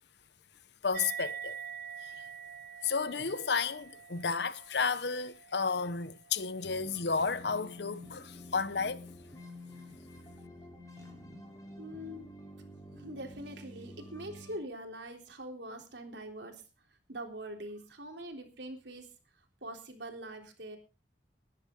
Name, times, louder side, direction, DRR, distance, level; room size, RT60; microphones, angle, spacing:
voice 1, 0.8-1.6 2.0-2.1 2.8-9.1, left 5 dB, 70° left, 0.9 m, -32 dB
sound 1, 0.9-7.8, right 7 dB, 55° right, 0.7 m, -46 dB
sound 2, 6.6-14.6, left 1 dB, 20° left, 3.4 m, -49 dB
voice 2, 11.8-12.3 12.9-16.6 17.1-19.1 19.6-20.8, right 1 dB, 80° right, 3.5 m, -43 dB
20.0 x 10.5 x 3.8 m
head